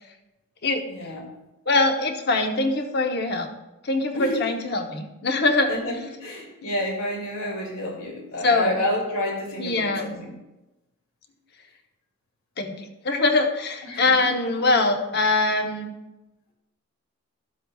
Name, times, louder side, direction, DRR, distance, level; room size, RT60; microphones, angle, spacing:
voice 1, 0.9-1.3 4.1-4.4 5.7-10.4 13.8-14.1, left 1 dB, 75° left, -2 dB, 2.6 m, -29 dB
voice 2, 1.7-3.5 3.8-5.7 8.4-8.8 9.6-10.2 12.6-12.8 13.0-15.9, left 3 dB, 45° left, 4 dB, 0.9 m, -23 dB
13.0 x 7.5 x 2.4 m, 0.99 s
head